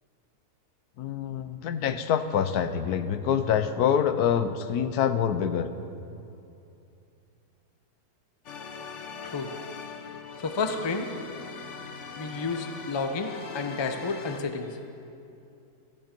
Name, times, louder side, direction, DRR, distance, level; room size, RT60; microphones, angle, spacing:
voice 1, 1.0-5.7, left 8 dB, 75° left, 10 dB, 1.2 m, -26 dB
sound 1, 8.5-14.4, left 5 dB, 50° left, 1.2 m, -41 dB
voice 2, 10.4-11.1 12.2-14.7, left 4 dB, 25° left, 6 dB, 0.5 m, -31 dB
27.5 x 9.3 x 4.4 m, 2.7 s
omnidirectional pair, 1.7 m